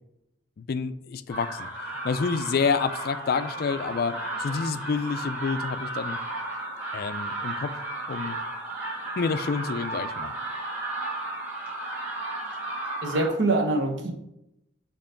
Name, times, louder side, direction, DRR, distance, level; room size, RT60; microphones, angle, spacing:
voice 1, 0.6-6.2 6.9-7.7 8.1-8.4 9.2-10.4, left 5 dB, 50° left, 12 dB, 0.4 m, -28 dB
sound 1, 1.3-13.3, right 2 dB, 10° right, 2.2 m, -34 dB
voice 2, 13.0-14.1, right 2 dB, 65° right, 1 dB, 1.1 m, -24 dB
6.9 x 3.0 x 5.6 m, 0.85 s
head